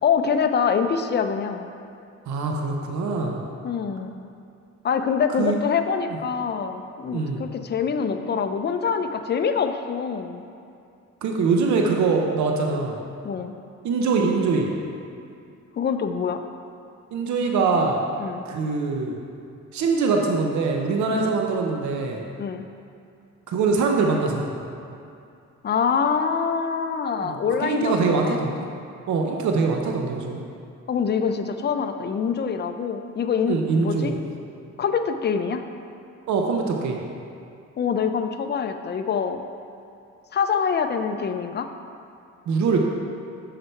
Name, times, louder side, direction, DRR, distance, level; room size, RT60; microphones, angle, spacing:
voice 1, 0.0-1.7 3.6-4.1 4.8-10.4 13.2-13.5 15.8-16.4 18.2-18.4 21.1-21.3 22.4-22.6 25.6-28.4 30.9-34.1 34.8-35.6 37.8-39.4 40.3-41.7, left 6 dB, 35° left, 7 dB, 0.5 m, -25 dB
voice 2, 2.3-3.4 5.3-5.6 6.1-6.2 7.1-7.4 11.2-13.0 13.8-14.7 17.1-18.0 18.5-19.2 19.7-22.2 23.5-24.5 27.2-27.4 27.6-28.7 29.1-30.4 33.5-34.2 36.3-37.0 42.5-42.8, right 4 dB, 70° right, 1 dB, 0.8 m, -23 dB
6.6 x 5.9 x 4.5 m, 2.5 s
cardioid pair, 90°, 30 cm